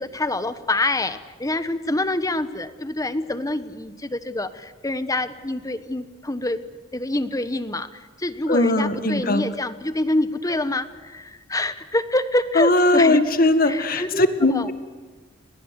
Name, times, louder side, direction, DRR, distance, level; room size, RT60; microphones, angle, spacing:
voice 1, 0.0-6.6 6.9-13.2 13.6-14.7, left 2 dB, 20° left, 12 dB, 1.2 m, -26 dB
voice 2, 8.5-9.4 12.6-14.7, left 2 dB, 50° left, 10 dB, 1.8 m, -19 dB
29.5 x 21.5 x 8.2 m, 1.3 s
head